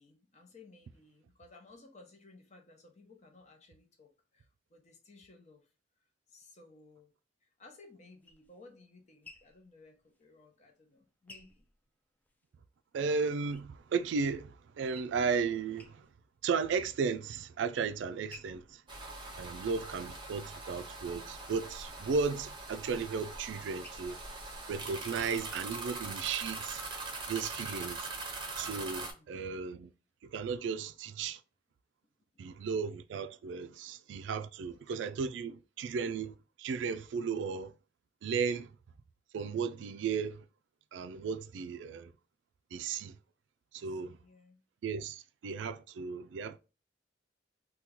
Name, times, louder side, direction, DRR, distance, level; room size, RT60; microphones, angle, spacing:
voice 1, 0.0-5.7 6.3-7.1 7.4-11.6 19.4-19.5 29.0-29.4 43.9-44.6, left 3 dB, 40° left, 0.7 m, -58 dB
sound 1, 7.8-12.5 12.9-14.2 14.6-15.4 15.7-16.4 16.8-17.4 17.9-20.6 21.1-25.4, left 2 dB, 10° left, 0.3 m, -59 dB
voice 2, 12.9-16.1 16.4-18.8 19.4-24.2 24.7-26.8 27.3-28.1 28.6-29.9 30.2-31.4 32.4-37.7 38.2-38.8 39.3-40.5 40.9-42.1 42.7-43.2 43.7-44.2 44.8-46.6, right 5 dB, 80° right, 0.3 m, -35 dB
sound 2, 18.9-29.1, right 3 dB, 25° right, 0.7 m, -42 dB
2.9 x 2.3 x 3.6 m
head